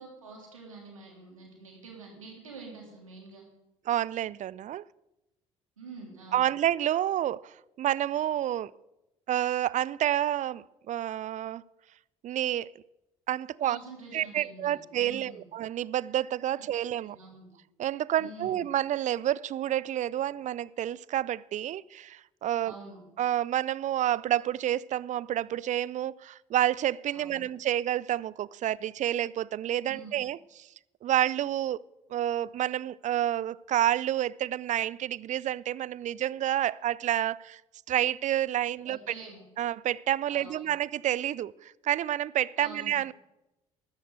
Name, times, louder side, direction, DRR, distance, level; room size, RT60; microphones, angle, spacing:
voice 1, 0.0-3.5 5.8-6.5 13.6-15.4 16.6-16.7 17.0-17.5 18.2-18.6 22.6-23.0 27.1-27.5 29.8-30.2 38.8-39.4 40.3-40.8 42.6-43.0, right 3 dB, 90° right, 3.5 m, -47 dB
voice 2, 3.9-4.8 6.3-8.7 9.3-11.6 12.2-12.7 13.3-13.8 14.1-17.2 17.8-22.7 23.2-30.7 31.0-31.8 32.1-37.6 37.9-39.0 39.6-43.1, right 12 dB, 45° right, 0.5 m, -29 dB
13.5 x 12.0 x 7.9 m
hypercardioid pair, 50°, 17 cm